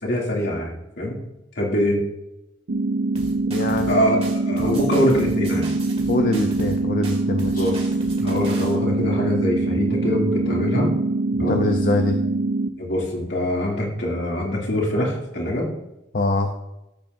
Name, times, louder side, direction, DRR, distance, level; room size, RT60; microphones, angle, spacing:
voice 1, 0.0-1.2 1.6-2.0 3.8-4.2 4.4-5.7 7.5-7.8 8.2-10.9 11.4-11.6 12.8-15.7, left 1 dB, 65° left, -2 dB, 2.7 m, -23 dB
sound 1, 2.7-12.7, right 2 dB, 80° right, 0.6 m, -24 dB
sound 2, 3.1-3.9 4.2-6.8 7.0-8.7, right 2 dB, 35° right, 2.2 m, -37 dB
voice 2, 3.5-4.2 4.6-4.8 6.1-7.7 11.3-12.2 16.1-16.5, left 2 dB, 50° left, 5 dB, 0.7 m, -23 dB
13.5 x 8.0 x 2.7 m, 0.91 s
head